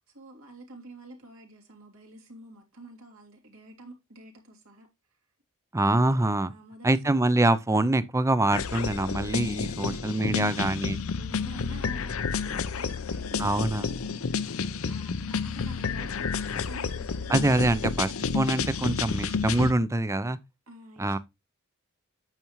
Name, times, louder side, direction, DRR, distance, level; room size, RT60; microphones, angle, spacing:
voice 1, 0.1-4.9 6.5-7.2 9.7-14.4 14.9-17.4 20.7-21.2, right 1 dB, 80° right, 3.0 m, -48 dB
voice 2, 5.7-6.5 6.8-11.0 13.4-13.9 17.3-20.4 21.0-21.2, right 2 dB, 15° right, 0.5 m, -25 dB
sound 1, 8.5-19.7, left 5 dB, 75° left, 0.6 m, -30 dB
9.0 x 6.9 x 3.1 m
head